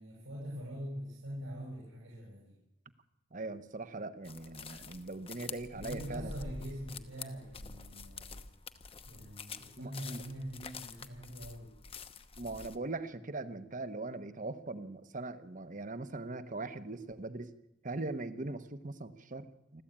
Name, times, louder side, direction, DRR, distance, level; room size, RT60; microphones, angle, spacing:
voice 1, 0.0-2.5 5.7-8.4 9.1-11.7, equal, 85° right, -4 dB, 6.5 m, -43 dB
voice 2, 3.3-6.3 9.8-10.2 12.4-17.5 17.8-19.8, right 2 dB, 40° right, 11 dB, 1.1 m, -40 dB
sound 1, 4.2-12.8, left 4 dB, 30° left, 1.0 m, -47 dB
27.5 x 13.5 x 8.9 m, 1.0 s
head